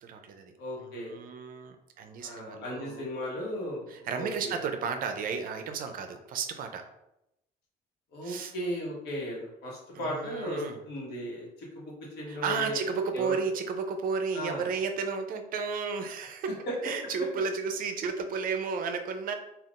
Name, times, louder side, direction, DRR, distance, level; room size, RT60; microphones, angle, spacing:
voice 1, 0.0-0.5 0.8-3.1 3.9-6.8 8.2-8.5 9.9-10.8 12.3-16.5 16.8-19.3, right 5 dB, 55° right, 6 dB, 0.4 m, -33 dB
voice 2, 0.6-1.2 2.2-4.7 8.1-12.8 13.1-13.4 14.3-14.7 16.7-16.8, equal, 80° left, -3 dB, 1.1 m, -36 dB
3.5 x 2.3 x 2.4 m, 0.87 s
cardioid pair, 110°, 17 cm